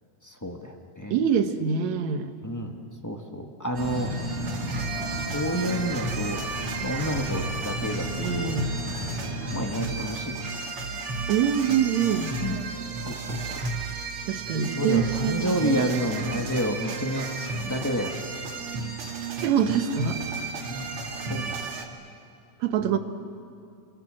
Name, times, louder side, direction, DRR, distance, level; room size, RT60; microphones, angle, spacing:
voice 1, 0.2-1.2 2.4-2.8 3.0-4.1 5.1-6.4 6.8-8.5 9.5-10.5 12.4-12.6 13.1-13.6 14.7-17.3 17.6-18.1 19.6-19.7 20.7-20.9 21.3-21.6 22.8-23.0, equal, 25° left, 2 dB, 0.4 m, -30 dB
voice 2, 1.1-2.3 8.2-8.7 11.3-12.3 14.3-16.0 19.4-20.2 22.6-23.0, right 8 dB, 65° right, 8 dB, 2.4 m, -25 dB
sound 1, 3.7-21.8, right 4 dB, 50° right, 2.5 m, -33 dB
sound 2, 3.8-9.9, left 2 dB, 65° left, 4.7 m, -35 dB
28.5 x 26.0 x 7.7 m, 2.5 s
omnidirectional pair, 3.6 m